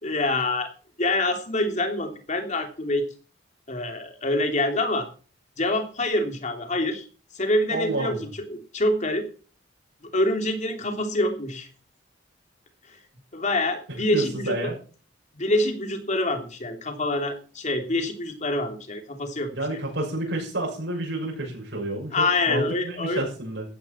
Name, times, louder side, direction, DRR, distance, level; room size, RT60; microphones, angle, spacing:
voice 1, 0.0-0.7 1.0-3.1 3.7-5.1 5.6-7.0 7.3-9.3 10.0-11.7 13.3-14.7 15.3-19.8 22.1-23.2, left 2 dB, 40° left, 5 dB, 3.1 m, -26 dB
voice 2, 7.7-8.2 13.9-14.7 19.5-23.6, right 1 dB, 70° right, -1 dB, 6.7 m, -30 dB
15.5 x 13.0 x 4.5 m, 0.38 s
head